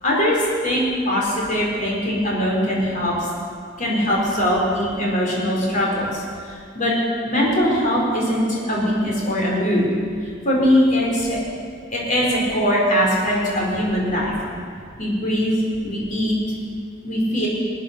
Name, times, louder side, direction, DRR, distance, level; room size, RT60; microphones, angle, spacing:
voice 1, 0.0-3.3 3.8-6.2 6.5-6.9 7.2-9.8 10.4-11.4 11.9-14.3 15.0-15.5 15.8-16.4 17.0-17.5, equal, 40° left, -4 dB, 4.1 m, -21 dB
20.0 x 9.0 x 6.6 m, 2.2 s
head